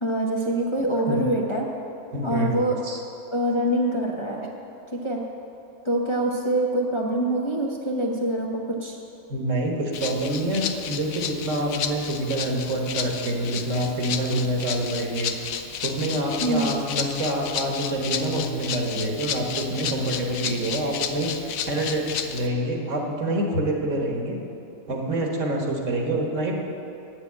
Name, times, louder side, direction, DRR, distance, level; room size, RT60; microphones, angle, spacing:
voice 1, 0.0-1.7 2.2-2.7 3.3-4.5 4.9-5.2 5.8-9.0 16.4-16.7, right 1 dB, 25° left, -2 dB, 0.7 m, -25 dB
voice 2, 2.1-3.0 9.3-15.3 15.8-24.4 24.9-26.5, right 1 dB, 60° right, 0 dB, 1.7 m, -26 dB
Rattle (instrument), 9.9-22.5, left 8 dB, 80° left, 1.1 m, -32 dB
8.6 x 7.2 x 8.5 m, 2.8 s
omnidirectional pair, 1.4 m